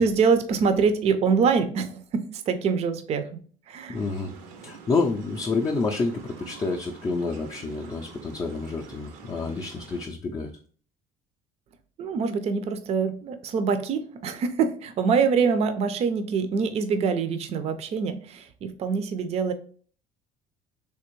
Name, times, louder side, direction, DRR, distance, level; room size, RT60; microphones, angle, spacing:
voice 1, 0.0-3.4 3.7-4.0 12.0-19.5, right 5 dB, 40° right, 9 dB, 0.5 m, -24 dB
voice 2, 3.9-4.3 4.6-10.5, left 3 dB, 25° left, 0 dB, 0.4 m, -28 dB
sound 1, 3.9-10.1, right 5 dB, 80° right, 0.7 m, -46 dB
3.4 x 2.9 x 3.0 m, 0.43 s
cardioid pair, 115°, 16 cm